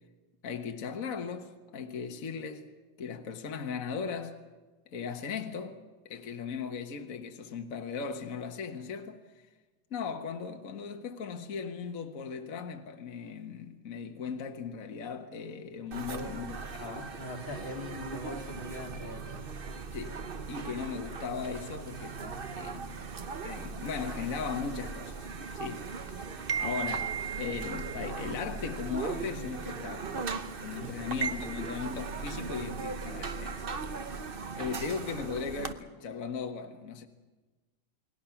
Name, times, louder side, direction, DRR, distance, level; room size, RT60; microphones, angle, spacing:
voice 1, 0.4-2.7 3.0-4.4 4.9-5.8 6.0-9.2 9.9-17.2 19.9-20.2 20.5-23.0 23.4-25.3 25.5-26.2 26.5-30.3 30.6-33.6 34.5-37.1, left 6 dB, 45° left, 1.6 m, -38 dB
voice 2, 15.9-16.5 16.9-19.4 30.7-30.9, left 1 dB, 80° left, 3.2 m, -42 dB
sound 1, 15.9-35.7, right 5 dB, 45° right, 0.7 m, -38 dB
29.0 x 20.5 x 5.9 m
omnidirectional pair, 2.1 m